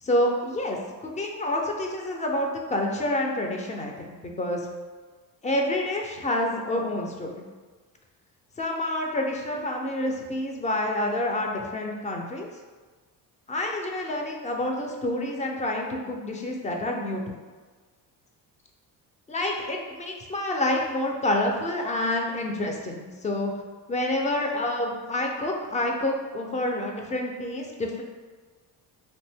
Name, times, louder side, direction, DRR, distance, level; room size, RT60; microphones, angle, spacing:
voice 1, 0.0-4.7 5.4-7.4 8.6-12.5 13.5-17.4 19.3-23.5 23.9-28.0, left 1 dB, 15° left, 1 dB, 0.3 m, -28 dB
2.5 x 2.1 x 3.3 m, 1.4 s
hypercardioid pair, 55°, 48 cm